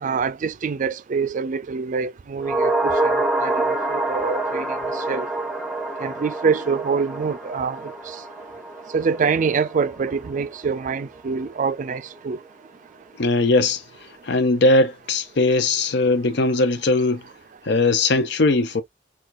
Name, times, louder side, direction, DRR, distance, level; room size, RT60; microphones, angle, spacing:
voice 1, 0.0-3.1 3.4-5.3 6.0-8.2 8.9-12.4, right 5 dB, 45° right, 0.4 m, -25 dB
sound 1, 2.4-10.9 11.2-11.3, right 2 dB, ahead, 0.7 m, -26 dB
voice 2, 13.2-13.8 14.2-17.2 17.6-18.8, left 2 dB, 65° left, 0.6 m, -19 dB
5.9 x 2.3 x 2.5 m
head